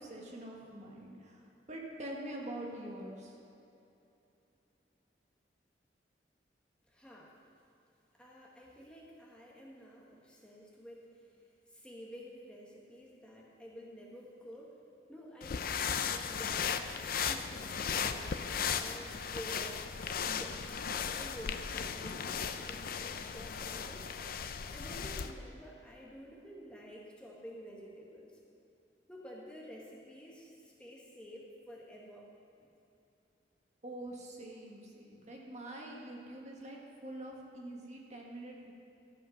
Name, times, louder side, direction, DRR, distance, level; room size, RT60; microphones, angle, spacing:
voice 1, 0.0-1.4 1.7-3.3 33.8-38.7, right 1 dB, 40° right, -1 dB, 1.6 m, -45 dB
voice 2, 6.9-7.5 8.1-11.3 11.7-14.8 15.1-16.9 17.2-19.8 20.2-24.1 24.7-28.4 29.1-32.3 32.6-32.7, equal, 5° left, -4 dB, 1.4 m, -50 dB
sound 1, 15.4-25.3, left 7 dB, 55° left, 0.5 m, -36 dB
13.5 x 7.8 x 5.7 m, 2.7 s
head